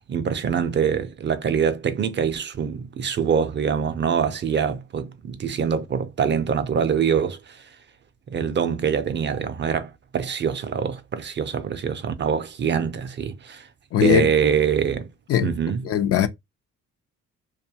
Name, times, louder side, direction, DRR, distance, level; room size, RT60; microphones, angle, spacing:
voice 1, 0.0-7.6 8.3-13.7 14.0-15.1 15.4-15.8, right 7 dB, 40° right, 0.4 m, -24 dB
voice 2, 13.9-14.3 15.3-15.5 15.8-16.3, left 10 dB, 55° left, 0.4 m, -19 dB
2.4 x 2.2 x 2.7 m
cardioid pair, 90°, 30 cm